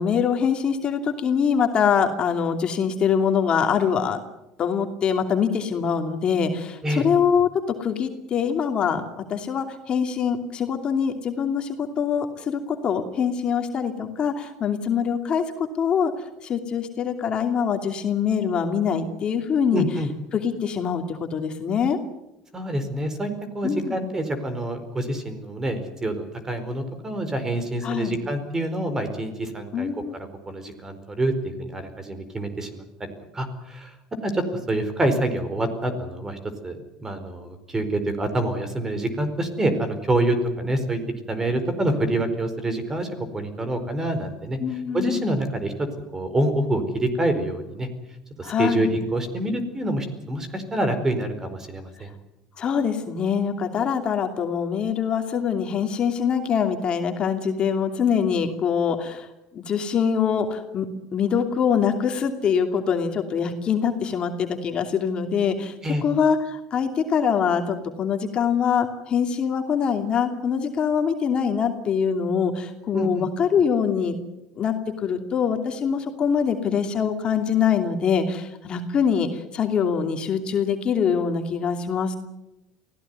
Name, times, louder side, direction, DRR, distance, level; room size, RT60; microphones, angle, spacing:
voice 1, 0.0-4.2 4.6-7.5 7.8-19.8 20.3-22.0 23.6-24.0 27.8-28.2 29.7-30.1 44.6-45.3 48.4-48.9 52.6-59.3 59.5-60.9 61.1-65.7 66.0-74.2 74.6-82.2, left 7 dB, 40° left, 5 dB, 2.8 m, -24 dB
voice 2, 19.7-20.1 22.5-33.9 34.2-41.0 41.3-43.1 43.3-44.6 44.9-45.9 46.1-47.9 48.4-52.1 65.8-66.0 72.9-73.3, right 1 dB, 20° right, 10 dB, 4.6 m, -26 dB
24.0 x 16.5 x 9.5 m, 0.93 s
supercardioid pair, 105°, 3 cm